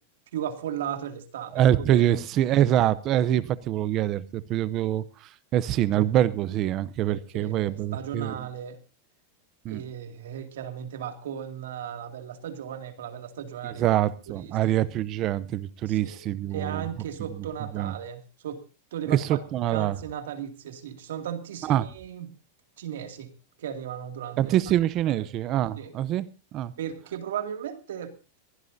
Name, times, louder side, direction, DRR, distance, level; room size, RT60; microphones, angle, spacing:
voice 1, 0.3-2.2 2.5-2.6 7.1-8.8 9.7-14.0 14.3-14.6 15.9-16.2 16.5-18.6 18.9-19.4 19.7-22.4 22.8-23.3 23.6-24.6 25.1-25.2 25.8-25.9 26.8-28.1, right 9 dB, 85° right, 2.4 m, -36 dB
voice 2, 1.5-8.4 9.6-9.8 13.6-16.9 17.4-17.5 17.7-17.9 19.1-20.0 21.6-21.9 24.4-26.3 26.5-26.7, right 12 dB, 25° right, 0.6 m, -25 dB
23.0 x 16.0 x 2.7 m
supercardioid pair, 175°, 0 cm